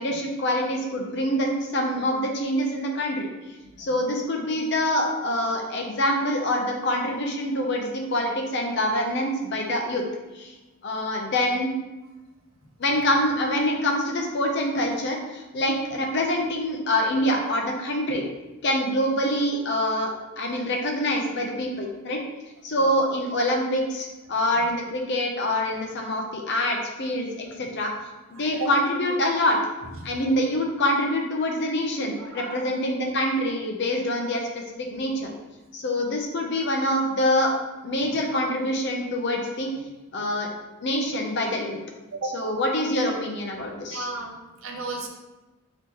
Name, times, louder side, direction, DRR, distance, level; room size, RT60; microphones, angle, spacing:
voice 1, 0.0-3.3 3.8-10.0 10.3-10.5 10.8-11.7 12.8-18.2 18.6-22.2 22.6-27.9 28.4-29.6 30.0-35.3 35.7-37.5 37.8-39.7 40.1-40.5 40.8-41.8 42.3-44.1, left 1 dB, 60° left, 1 dB, 0.6 m, -25 dB
voice 2, 28.3-28.7 29.8-30.1 32.1-32.6 38.0-38.2 40.1-40.2 42.1-42.6 43.9-45.1, right 3 dB, 75° right, 2 dB, 0.6 m, -35 dB
3.5 x 2.9 x 2.9 m, 1.1 s
head